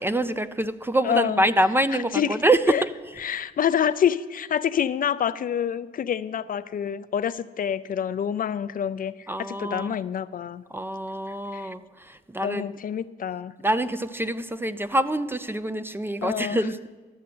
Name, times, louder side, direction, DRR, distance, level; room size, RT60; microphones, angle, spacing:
voice 1, 0.0-2.9 9.3-9.9 10.7-12.7 13.6-16.8, right 1 dB, 10° right, 13 dB, 0.4 m, -25 dB
voice 2, 1.0-1.4 1.9-2.4 2.7-2.8 3.2-10.6 11.5-11.7 12.4-13.5 16.2-16.6, left 8 dB, 45° left, 14 dB, 0.4 m, -27 dB
12.5 x 6.5 x 7.7 m, 1.4 s
cardioid pair, 90°, 20 cm